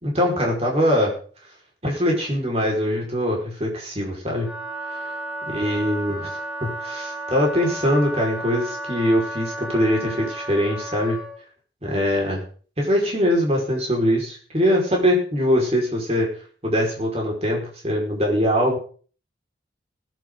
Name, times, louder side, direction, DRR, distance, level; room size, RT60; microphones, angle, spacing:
voice 1, 0.0-1.2 1.8-4.5 5.0-5.1 5.5-11.2 11.8-12.4 12.8-16.3 16.6-18.8, equal, 35° right, -1 dB, 5.3 m, -22 dB
Wind instrument woodwind instrument, 4.3-11.4, right 1 dB, 5° right, 6.2 m, -33 dB
20.5 x 11.0 x 4.0 m, 0.42 s
head